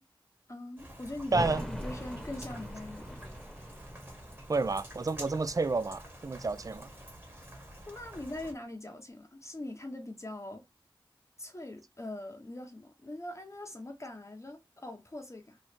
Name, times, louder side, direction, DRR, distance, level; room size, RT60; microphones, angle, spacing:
voice 1, 0.5-3.2 7.9-10.7 11.4-15.6, left 1 dB, 35° left, 0.8 m, -42 dB
Rain, 0.8-8.5, right 1 dB, 25° right, 1.4 m, -49 dB
sound 1, 1.2-6.8 7.1-7.2, equal, ahead, 1.0 m, -42 dB
voice 2, 1.3-1.6 4.5-6.9, right 3 dB, 40° right, 0.4 m, -30 dB
3.0 x 2.4 x 4.2 m
wide cardioid pair, 45°, 9 cm